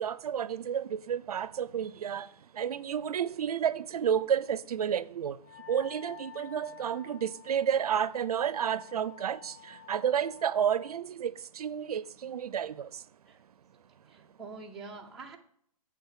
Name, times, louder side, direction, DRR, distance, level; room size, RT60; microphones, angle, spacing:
voice 1, 0.0-5.4 5.7-13.0, right 8 dB, 80° right, 0.6 m, -31 dB
Wind instrument woodwind instrument, 5.4-11.0, left 14 dB, 30° left, 0.9 m, -51 dB
voice 2, 14.0-15.4, right 4 dB, ahead, 0.4 m, -45 dB
8.2 x 5.8 x 7.3 m
hypercardioid pair, 170°, 19 cm